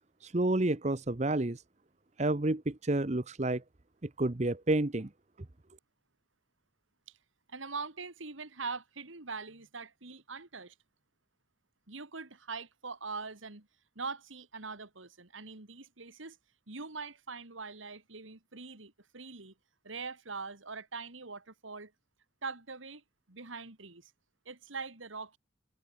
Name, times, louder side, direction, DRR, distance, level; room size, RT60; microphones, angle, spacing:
voice 1, 0.2-1.6 2.2-3.6 4.0-5.1, right 2 dB, 35° right, 0.9 m, -30 dB
voice 2, 7.5-10.7 11.9-13.7 14.0-16.4 16.7-19.5 19.8-21.9 22.4-24.1 24.5-25.4, right 4 dB, 80° right, 2.6 m, -42 dB
head